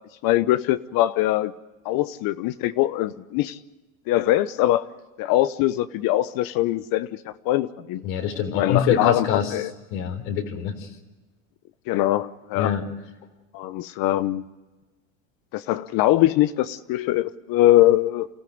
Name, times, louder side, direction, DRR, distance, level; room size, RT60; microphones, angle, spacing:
voice 1, 0.2-1.5 1.8-3.6 4.1-4.9 5.2-8.0 8.5-9.7 11.9-12.7 13.5-14.4 15.5-18.3, left 15 dB, 55° left, 14 dB, 1.0 m, -22 dB
voice 2, 8.0-9.5 9.9-10.9 12.6-12.8, left 8 dB, 75° left, 3 dB, 4.0 m, -25 dB
28.0 x 15.0 x 9.5 m, 1.2 s
hypercardioid pair, 95°, 40 cm